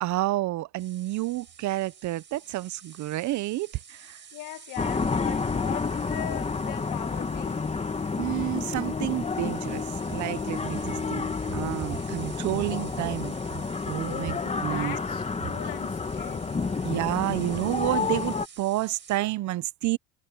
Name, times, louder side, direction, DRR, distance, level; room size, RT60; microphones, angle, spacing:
voice 1, 0.0-4.2 8.2-9.8 10.1-11.3 11.5-13.4 13.8-14.4 14.6-15.0 16.8-20.0, right 16 dB, 55° right, 0.9 m, -29 dB
sound 1, 0.8-19.2, right 6 dB, 35° right, 5.4 m, -50 dB
voice 2, 4.3-7.6 14.0-16.9, left 17 dB, 65° left, 1.6 m, -40 dB
sound 2, 4.8-18.5, left 4 dB, 20° left, 1.6 m, -30 dB
supercardioid pair, 100°, 34 cm